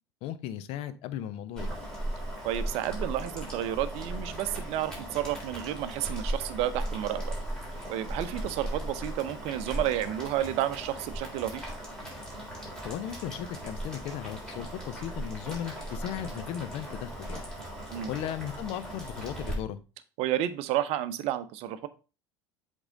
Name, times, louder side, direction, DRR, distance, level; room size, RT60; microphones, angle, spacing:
voice 1, 0.2-1.7 12.8-17.5 18.1-19.8, left 10 dB, 50° left, 13 dB, 0.6 m, -36 dB
Boiling, 1.6-19.5, right 1 dB, 5° left, 3.3 m, -38 dB
voice 2, 2.4-7.2 7.9-11.7 17.9-18.1 20.2-21.9, right 12 dB, 50° right, 13 dB, 0.6 m, -31 dB
7.9 x 3.7 x 3.7 m, 0.32 s
figure-of-eight pair, 70°, 13 cm